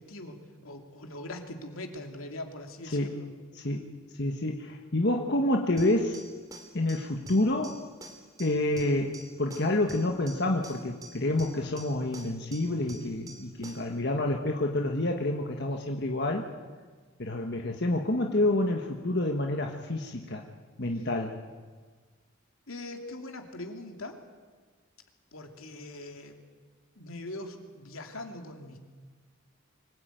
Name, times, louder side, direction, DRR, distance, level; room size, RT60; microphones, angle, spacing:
voice 1, 0.0-3.3 21.0-21.1 22.7-24.2 25.3-26.4 27.0-28.8, left 1 dB, 80° left, 4 dB, 2.8 m, -41 dB
voice 2, 4.2-6.2 6.7-7.8 8.4-16.5 17.2-20.4 20.8-21.4, left 1 dB, 55° left, 2 dB, 1.5 m, -28 dB
sound 1, 5.8-14.0, right 2 dB, 15° right, 2.8 m, -48 dB
24.5 x 17.5 x 9.2 m, 1.5 s
head